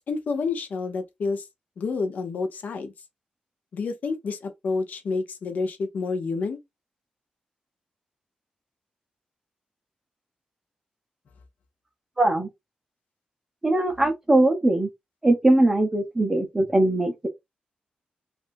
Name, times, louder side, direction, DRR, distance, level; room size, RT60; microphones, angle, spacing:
voice 1, 0.0-1.5 1.8-2.9 3.7-6.6, left 4 dB, 70° left, 0.7 m, -29 dB
voice 2, 12.2-12.5 13.6-14.9 15.2-17.3, right 1 dB, 15° right, 0.7 m, -21 dB
3.4 x 2.5 x 2.6 m
wide cardioid pair, 115°, 3 cm